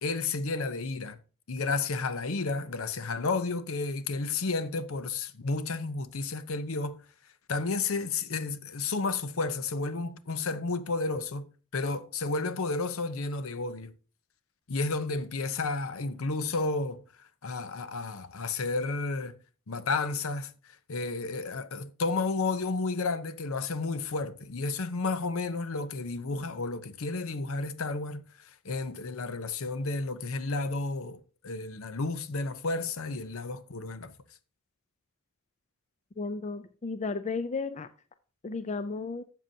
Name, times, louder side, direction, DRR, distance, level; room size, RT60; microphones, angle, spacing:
voice 1, 0.0-1.2 1.5-7.0 7.5-11.5 11.7-13.9 14.7-19.3 19.7-20.5 20.9-34.1, left 3 dB, 65° left, 0.7 m, -32 dB
voice 2, 36.2-37.9 38.4-39.2, left 4 dB, 30° left, 0.4 m, -33 dB
12.5 x 7.5 x 2.7 m
head